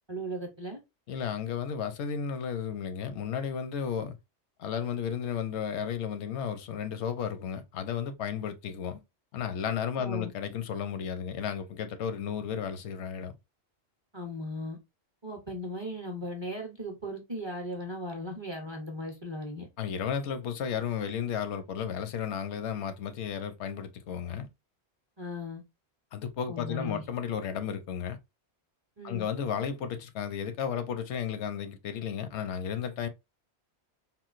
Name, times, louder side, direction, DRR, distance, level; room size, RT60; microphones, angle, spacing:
voice 1, 0.1-0.8 10.0-10.3 14.1-14.8 15.2-19.7 25.2-25.6 26.5-27.0 29.0-29.3, equal, 30° right, 0.5 m, -37 dB
voice 2, 1.1-4.2 4.6-9.0 9.3-13.3 19.8-24.5 26.1-28.2 29.0-33.1, left 8 dB, 80° left, 0.9 m, -33 dB
3.7 x 2.2 x 2.4 m
omnidirectional pair, 1.1 m